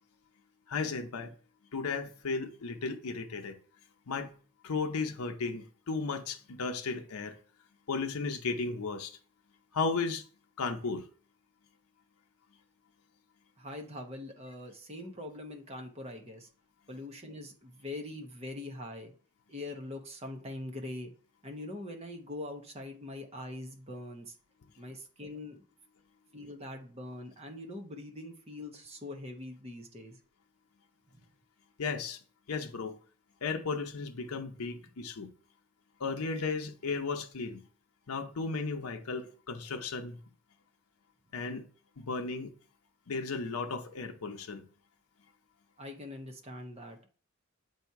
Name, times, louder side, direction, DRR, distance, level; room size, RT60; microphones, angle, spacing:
voice 1, 0.7-1.4 1.7-3.6 4.1-4.4 4.6-7.4 7.9-9.2 9.7-10.2 10.6-11.1 31.8-32.2 32.5-33.0 33.4-35.3 36.0-37.6 38.1-40.2 41.3-41.6 42.0-42.5 43.1-44.7, left 4 dB, 80° left, 0.7 m, -35 dB
voice 2, 13.6-16.5 16.9-19.1 19.5-21.1 21.4-24.3 24.8-25.6 26.3-30.2 31.1-31.2 45.8-47.0, left 1 dB, 25° right, 0.8 m, -43 dB
7.8 x 2.8 x 4.6 m
head